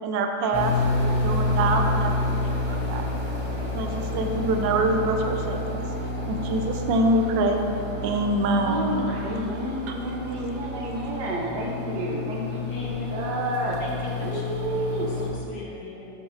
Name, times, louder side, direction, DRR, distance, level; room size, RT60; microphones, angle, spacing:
voice 1, 0.0-3.0 3.7-5.8 6.3-7.6 8.0-8.9 9.9-10.0, right 2 dB, 90° right, 4 dB, 1.3 m, -25 dB
sound 1, 0.5-15.3, left 2 dB, 30° left, 0.6 m, -29 dB
voice 2, 8.7-13.8 14.2-15.1, right 2 dB, 70° right, -1 dB, 1.4 m, -30 dB
voice 3, 12.7-13.1 13.8-14.4 14.7-16.1, left 2 dB, 65° left, -4 dB, 1.6 m, -40 dB
8.0 x 6.7 x 2.7 m, 2.8 s
omnidirectional pair, 1.9 m